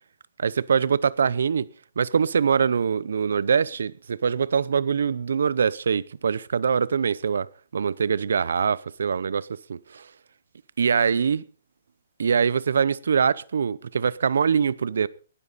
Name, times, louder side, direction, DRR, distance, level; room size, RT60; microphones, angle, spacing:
voice 1, 0.4-1.7 2.0-7.5 7.7-10.1 10.8-11.5 12.2-15.1, right 6 dB, 85° right, 0.7 m, -23 dB
19.0 x 12.5 x 4.1 m
hypercardioid pair, 180°, 0 cm